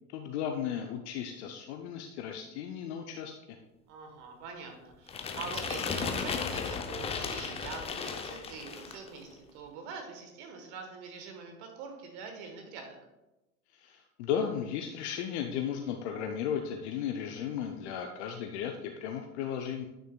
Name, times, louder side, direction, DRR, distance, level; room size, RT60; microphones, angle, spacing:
voice 1, 0.1-3.3 13.7-19.9, left 8 dB, 50° left, 4 dB, 0.7 m, -35 dB
voice 2, 3.9-13.0, right 5 dB, 50° right, 4 dB, 1.4 m, -44 dB
sound 1, 5.1-9.1, left 5 dB, 15° left, 0.5 m, -35 dB
9.3 x 6.3 x 2.3 m, 0.99 s
figure-of-eight pair, 85°, 43 cm